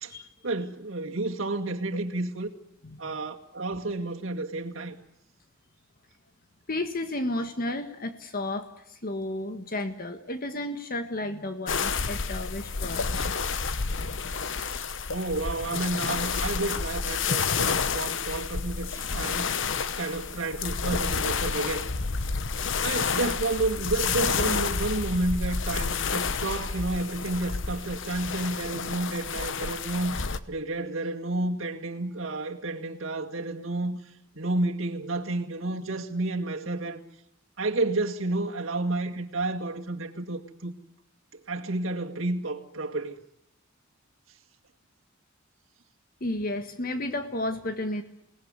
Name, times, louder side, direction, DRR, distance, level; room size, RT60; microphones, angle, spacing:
voice 1, 0.4-2.5 3.0-5.0 15.1-19.5 20.0-21.8 22.8-30.2 30.5-34.0 34.4-37.0 37.6-40.7 41.3-43.2, right 2 dB, 75° right, 2.3 m, -30 dB
voice 2, 2.8-3.1 6.7-13.2 46.2-48.0, left 1 dB, 45° left, 1.6 m, -32 dB
sound 1, 11.7-30.4, left 5 dB, 65° left, 1.1 m, -30 dB
28.5 x 18.5 x 9.7 m
head